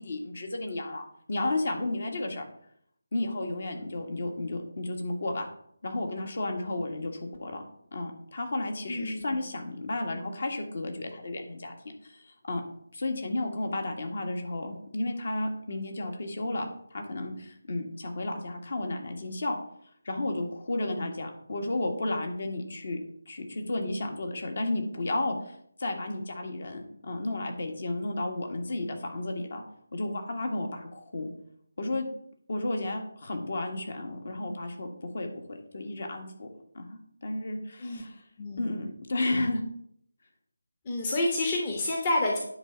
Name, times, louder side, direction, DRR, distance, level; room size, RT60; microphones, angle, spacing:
voice 1, 0.0-2.4 3.1-5.5 5.8-7.6 7.9-11.8 12.0-12.6 12.9-19.6 20.1-23.0 23.3-29.6 29.9-31.3 31.8-32.1 32.5-36.5 36.7-38.2 38.6-39.6, left 2 dB, 50° left, 4 dB, 1.7 m, -33 dB
voice 2, 8.9-9.4 37.8-38.0 38.4-38.7 40.8-42.4, left 2 dB, 25° left, 0 dB, 1.1 m, -29 dB
9.9 x 4.0 x 5.8 m, 0.67 s
figure-of-eight pair, 155°, 0 cm